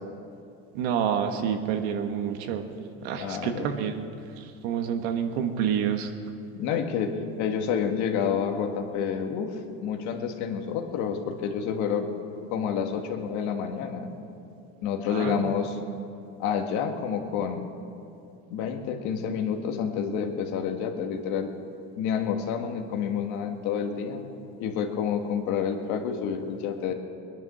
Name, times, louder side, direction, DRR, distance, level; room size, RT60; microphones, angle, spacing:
voice 1, 0.7-2.7 3.0-4.0 4.4-6.1 15.1-15.5, right 8 dB, 75° right, 6 dB, 1.5 m, -28 dB
voice 2, 3.2-3.7 6.6-7.1 7.4-12.1 12.5-14.1 14.8-15.8 16.4-17.6 18.5-21.5 22.0-24.2 24.6-26.9, left 7 dB, 65° left, 4 dB, 1.8 m, -29 dB
21.0 x 10.5 x 6.2 m, 2.7 s
supercardioid pair, 130°, 32 cm